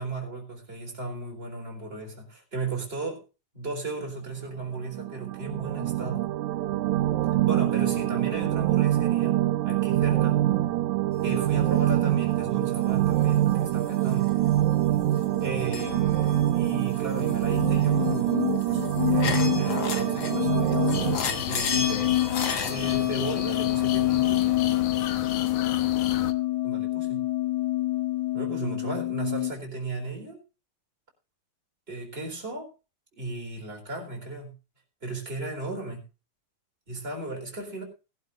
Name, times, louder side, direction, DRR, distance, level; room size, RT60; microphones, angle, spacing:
voice 1, 0.0-3.2 3.5-6.3 7.5-9.4 9.6-10.4 11.2-14.3 15.4-22.0 22.7-24.6 26.6-27.2 28.3-30.4 31.9-32.7 33.1-34.5 35.0-36.0 36.9-37.8, right 2 dB, 20° right, 1 dB, 4.3 m, -36 dB
sound 1, 4.8-21.2, right 14 dB, 75° right, 2.1 m, -25 dB
sound 2, 13.9-14.7 15.0-29.5, left 13 dB, 45° left, 1.8 m, -28 dB
sound 3, 20.9-26.3, left 9 dB, 65° left, 1.8 m, -34 dB
20.5 x 12.0 x 2.5 m, 0.31 s
omnidirectional pair, 3.6 m